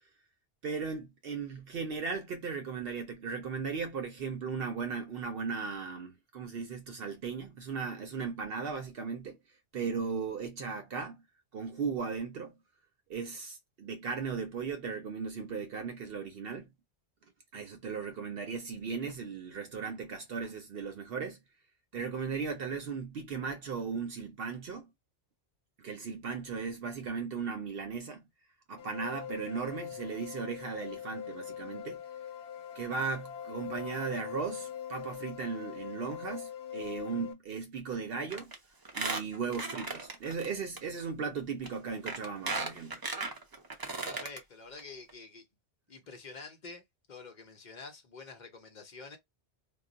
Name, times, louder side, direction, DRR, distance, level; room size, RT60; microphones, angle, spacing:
voice 1, 0.6-9.4 9.7-11.2 11.5-12.5 13.1-16.7 17.5-21.4 21.9-24.9 25.8-28.2 28.7-32.0 32.8-38.5 38.9-43.0, right 5 dB, 65° right, 0.8 m, -37 dB
sound 1, 28.8-37.3, left 9 dB, 80° left, 0.8 m, -42 dB
Squeak, 38.3-38.5 38.8-40.5 40.8-40.9 41.6-41.7 42.1-44.4 44.8-44.9 45.1-45.2, right 3 dB, 35° right, 0.4 m, -36 dB
voice 2, 44.0-45.4 45.9-46.8 47.1-49.2, left 4 dB, 50° left, 0.8 m, -48 dB
2.3 x 2.1 x 3.8 m
omnidirectional pair, 1.1 m